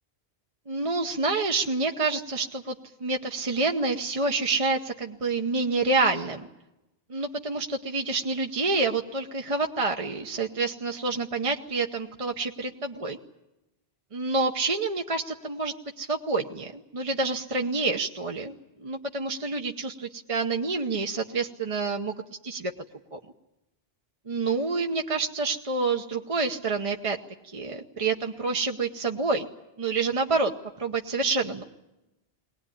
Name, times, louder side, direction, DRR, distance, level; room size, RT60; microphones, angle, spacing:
voice 1, 0.7-2.7 3.0-6.5 7.1-13.2 14.1-22.1 22.4-22.7 23.1-23.2 24.3-27.2 27.5-29.5 29.8-30.5 30.8-31.6, right 3 dB, 35° right, 3 dB, 1.0 m, -28 dB
21.5 x 19.0 x 9.9 m, 0.97 s
omnidirectional pair, 1.1 m